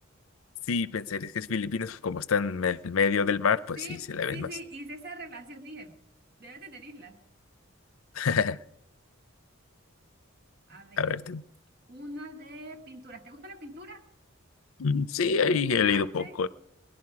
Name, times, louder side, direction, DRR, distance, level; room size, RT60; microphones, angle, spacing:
voice 1, 0.7-3.8 4.1-4.5 8.2-8.6 11.0-11.4 14.8-16.5, left 5 dB, 80° left, 16 dB, 0.5 m, -27 dB
voice 2, 4.3-6.0 6.4-7.2 10.7-11.2 11.9-14.0 15.7-16.3, right 1 dB, 50° right, 5 dB, 1.5 m, -43 dB
20.0 x 11.0 x 4.8 m, 0.76 s
head